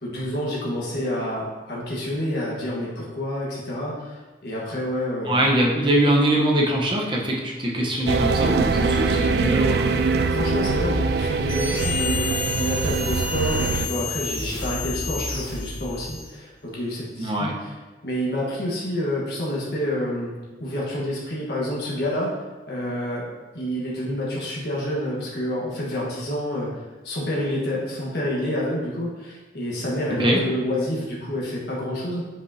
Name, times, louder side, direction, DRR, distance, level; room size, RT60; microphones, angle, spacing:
voice 1, 0.0-5.4 10.3-12.3 12.6-17.7 18.0-20.3 20.6-22.4 22.7-23.3 23.5-32.3, left 1 dB, 65° left, -5 dB, 1.4 m, -28 dB
voice 2, 5.3-9.9 17.2-17.5 30.2-30.4, right 1 dB, 25° right, -1 dB, 1.0 m, -22 dB
sound 1, 8.1-13.9, right 4 dB, 60° right, 0.3 m, -23 dB
sound 2, 11.5-16.4, left 4 dB, 25° left, 1.0 m, -30 dB
8.1 x 5.3 x 2.8 m, 1.3 s
head